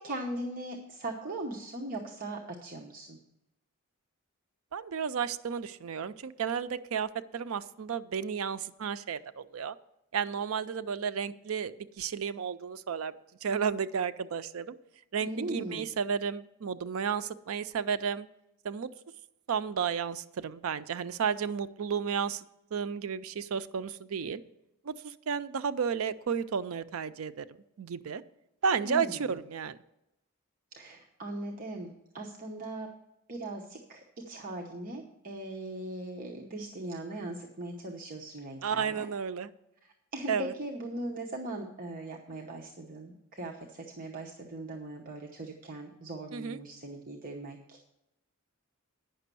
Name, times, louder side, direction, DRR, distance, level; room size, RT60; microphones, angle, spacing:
voice 1, 0.0-3.2 15.2-15.9 28.8-29.3 30.8-32.9 33.3-39.1 40.1-47.9, right 1 dB, 40° right, 0 dB, 0.9 m, -39 dB
voice 2, 4.7-9.7 10.1-11.7 12.0-13.1 13.4-14.7 15.1-18.3 18.6-18.9 19.5-22.4 22.7-24.4 24.9-25.0 25.3-27.5 27.8-28.2 28.6-29.8 38.6-39.5 40.3-40.5 46.3-46.6, right 6 dB, 70° right, 13 dB, 0.5 m, -32 dB
9.3 x 6.0 x 6.7 m, 0.89 s
head